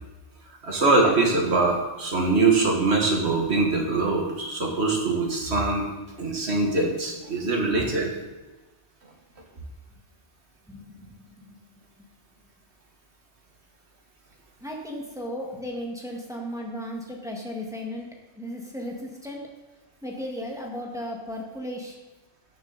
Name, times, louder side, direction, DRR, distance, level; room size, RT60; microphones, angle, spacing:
voice 1, 0.6-5.9 6.2-8.1, right 3 dB, 70° right, 1 dB, 2.0 m, -23 dB
voice 2, 10.7-11.3 14.6-18.1 18.4-19.4 20.0-22.0, equal, 5° right, -1 dB, 1.7 m, -35 dB
13.0 x 7.1 x 4.0 m, 1.1 s
omnidirectional pair, 1.1 m